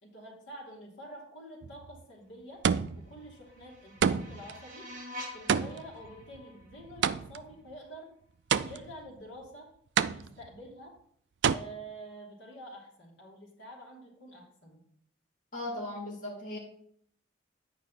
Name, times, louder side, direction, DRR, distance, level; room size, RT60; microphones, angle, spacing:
voice 1, 0.0-2.6 3.0-4.9 5.3-8.1 8.6-9.7 10.1-10.9 11.5-14.8, right 1 dB, 70° left, -2 dB, 2.6 m, -47 dB
sound 1, 1.6-2.0 2.6-3.2 4.0-4.5 5.5-7.5 8.5-9.1 10.0-10.6 11.4-11.6, right 7 dB, 65° right, 0.3 m, -28 dB
sound 2, 2.9-7.9, left 1 dB, 40° right, 1.3 m, -48 dB
voice 2, 15.5-16.6, left 1 dB, 40° left, -4 dB, 2.5 m, -37 dB
9.0 x 5.2 x 4.1 m, 0.65 s
head